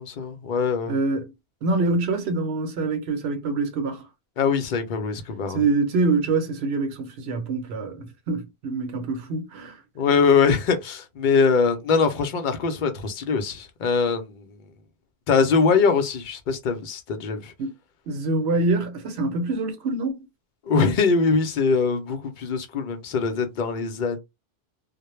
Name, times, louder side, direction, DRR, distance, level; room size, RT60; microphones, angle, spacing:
voice 1, 0.0-1.0 4.4-5.6 10.0-14.4 15.3-17.5 20.7-24.2, left 5 dB, 60° left, 0.6 m, -22 dB
voice 2, 0.9-1.3 1.6-4.1 5.5-9.8 17.6-17.7 18.1-20.3, right 3 dB, 80° right, 0.9 m, -25 dB
2.2 x 2.0 x 3.0 m
omnidirectional pair, 1.1 m